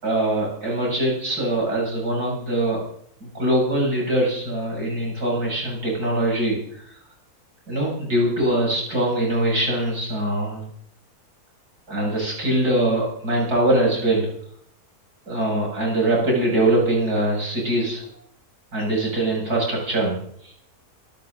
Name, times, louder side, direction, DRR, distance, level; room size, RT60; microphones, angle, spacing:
voice 1, 0.0-2.8 3.2-6.9 7.7-10.6 11.9-14.3 15.3-18.0 18.7-20.2 20.4-20.5, right 1 dB, 90° right, -3 dB, 7.9 m, -22 dB
25.0 x 14.0 x 4.0 m, 0.66 s
omnidirectional pair, 1.6 m